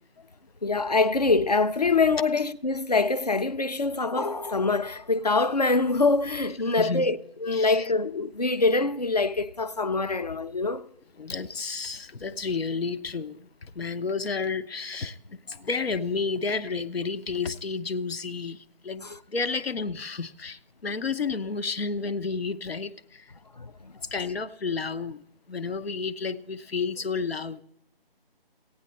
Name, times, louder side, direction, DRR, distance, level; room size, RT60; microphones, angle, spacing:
voice 1, 0.6-10.8 19.0-19.2 23.6-23.9 24.2-24.3, left 3 dB, 45° left, 0.5 m, -24 dB
voice 2, 6.7-7.1 7.5-7.9 11.2-23.3 24.1-27.6, left 4 dB, 80° left, 0.9 m, -31 dB
15.5 x 9.6 x 4.2 m
figure-of-eight pair, 170°, 30 cm